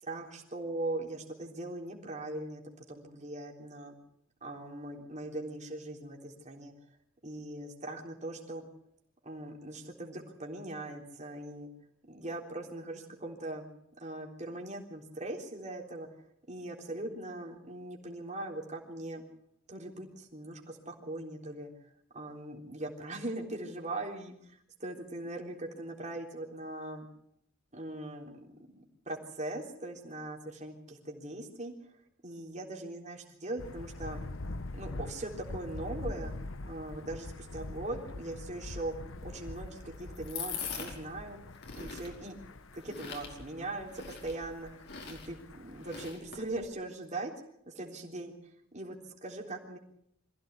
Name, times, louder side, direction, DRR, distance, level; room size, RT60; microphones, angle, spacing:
voice 1, 0.0-2.6 2.9-4.0 4.4-6.7 7.2-8.6 9.2-11.7 12.1-13.7 14.0-19.2 19.7-27.1 27.7-28.4 28.7-32.0 32.2-34.2 34.7-36.3 36.7-38.9 39.2-41.4 41.8-42.4 42.7-47.3 47.7-48.3 48.7-49.8, right 2 dB, 35° right, 1 dB, 3.6 m, -40 dB
Thunder, 33.6-46.1, left 2 dB, 75° left, 1.0 m, -44 dB
sound 1, 39.2-46.6, left 6 dB, 55° left, 4.8 m, -44 dB
24.0 x 15.5 x 8.2 m, 0.72 s
head